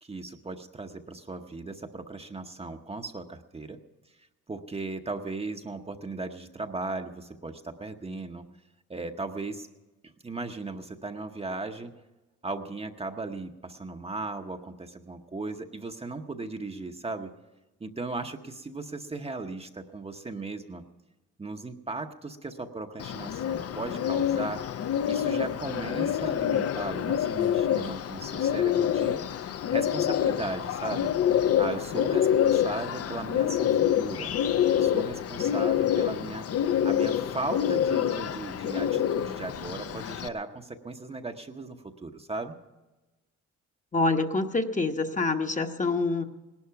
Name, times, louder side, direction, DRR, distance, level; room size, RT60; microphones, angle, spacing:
voice 1, 0.0-3.8 4.5-8.5 8.9-9.7 10.0-11.9 12.4-17.3 17.8-20.8 21.4-24.6 25.1-29.2 29.7-31.1 31.6-34.3 34.7-36.5 36.8-42.6, right 3 dB, 20° right, 5 dB, 0.9 m, -37 dB
Bird, 23.0-40.3, left 10 dB, 50° left, 0.6 m, -27 dB
voice 2, 43.9-46.2, left 3 dB, 25° left, 5 dB, 1.0 m, -26 dB
17.5 x 11.5 x 5.8 m, 1.1 s
cardioid pair, 90°, 30 cm